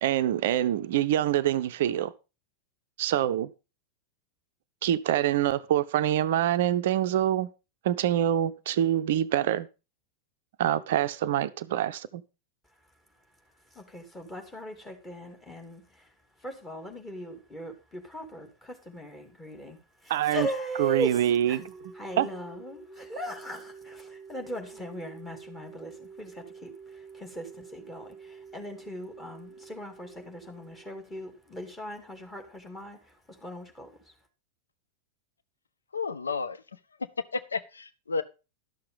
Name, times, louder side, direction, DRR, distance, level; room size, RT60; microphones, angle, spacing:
voice 1, 0.0-2.1 3.0-3.5 4.8-7.5 7.8-9.7 10.6-12.2 20.1-20.5 20.8-21.6 22.2-22.3, right 11 dB, 55° right, 0.5 m, -25 dB
voice 2, 12.6-21.6 21.9-34.3, equal, 15° left, 2.4 m, -39 dB
sound 1, 21.1-31.7, right 4 dB, 20° right, 1.1 m, -48 dB
voice 3, 35.9-36.6 37.3-38.2, left 4 dB, 75° left, 0.6 m, -31 dB
12.0 x 6.7 x 5.1 m
figure-of-eight pair, 90°, 0 cm